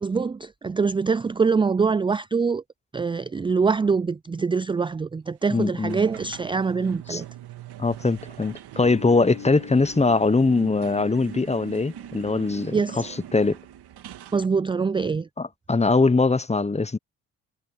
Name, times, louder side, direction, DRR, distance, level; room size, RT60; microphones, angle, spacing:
voice 1, 0.0-2.6 2.9-7.3 12.7-13.1 14.3-15.3, right 5 dB, 15° right, 0.3 m, -24 dB
voice 2, 5.5-6.0 7.1-7.2 7.8-13.6 15.4-17.0, left 3 dB, 15° left, 1.0 m, -22 dB
sound 1, 5.9-14.5, right 11 dB, 75° right, 2.6 m, -42 dB
Bass guitar, 8.8-12.9, left 11 dB, 75° left, 5.3 m, -43 dB
supercardioid pair, 60°, 39 cm